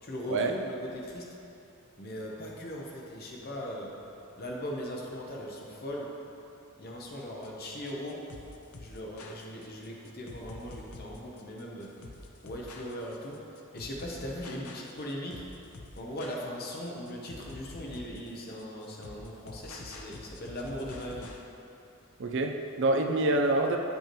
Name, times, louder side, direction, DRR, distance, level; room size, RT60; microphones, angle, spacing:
voice 1, 0.0-1.3 2.0-4.0 4.4-6.2 6.8-8.3 8.8-12.0 12.4-15.5 16.0-21.4, equal, 45° left, -2 dB, 0.9 m, -39 dB
sound 1, 7.4-21.4, left 2 dB, 70° left, 0.6 m, -47 dB
voice 2, 22.2-23.8, right 2 dB, 55° right, 3 dB, 0.5 m, -26 dB
8.5 x 5.4 x 3.0 m, 2.8 s
head